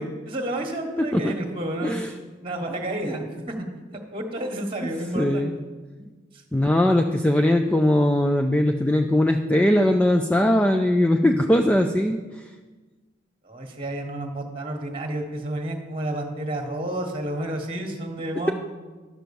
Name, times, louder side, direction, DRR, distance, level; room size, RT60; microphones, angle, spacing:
voice 1, 0.0-2.0 2.4-3.6 4.1-5.6 6.3-6.4 13.4-18.5, right 1 dB, 30° right, 4 dB, 1.3 m, -30 dB
voice 2, 5.1-5.5 6.5-12.2, left 1 dB, 5° left, 4 dB, 0.4 m, -20 dB
11.5 x 6.1 x 7.0 m, 1.3 s
head